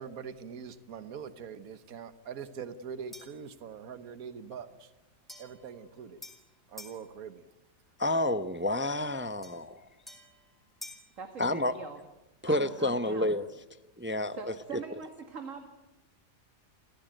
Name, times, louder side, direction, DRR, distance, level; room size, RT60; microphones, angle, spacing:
voice 1, 0.0-4.9 5.4-6.2 6.7-7.4, right 7 dB, 75° right, 11 dB, 1.6 m, -43 dB
sound 1, 3.1-3.5 5.3-7.0 9.4-11.1, left 1 dB, ahead, 4.2 m, -50 dB
voice 2, 8.0-9.8 11.4-11.7 12.4-13.5 14.0-14.4, left 1 dB, 15° right, 11 dB, 0.4 m, -29 dB
voice 3, 11.2-12.0 12.5-13.3 14.3-15.7, right 5 dB, 60° right, 5 dB, 2.3 m, -43 dB
29.5 x 15.0 x 9.1 m, 1.0 s
omnidirectional pair, 1.5 m